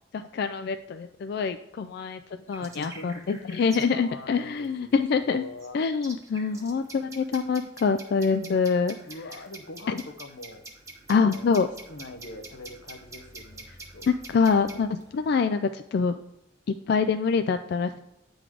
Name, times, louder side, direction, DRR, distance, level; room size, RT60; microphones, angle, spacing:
voice 1, 0.1-2.2 2.5-5.4 5.7-9.0 9.9-10.0 11.1-11.7 14.1-16.2 16.7-18.1, left 5 dB, 60° left, 9 dB, 0.3 m, -25 dB
sound 1, 2.5-15.4, right 2 dB, 15° right, 1.0 m, -47 dB
voice 2, 2.6-3.3 3.9-5.8 6.5-7.0 9.1-10.7 11.1-11.5 11.9-13.7 13.9-14.1, left 2 dB, 90° left, 7 dB, 0.9 m, -43 dB
9.1 x 4.0 x 4.7 m, 0.90 s
head